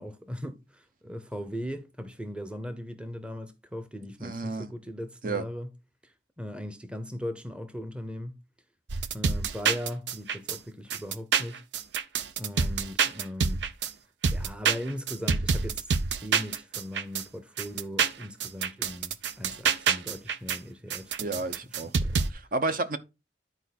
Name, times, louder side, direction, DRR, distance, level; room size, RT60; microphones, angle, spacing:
voice 1, 0.0-5.7 6.0-8.4 9.1-11.6 12.4-13.7 14.3-15.9 16.2-22.2, equal, 5° right, 0.7 m, -39 dB
voice 2, 4.2-4.7 5.2-5.4 21.2-21.9 22.3-23.0, right 3 dB, 50° right, 0.8 m, -31 dB
sound 1, 8.9-10.6 10.9-13.9 14.2-17.2 17.6-20.6 20.9-22.3, right 5 dB, 80° right, 0.7 m, -27 dB
10.5 x 4.6 x 4.1 m
head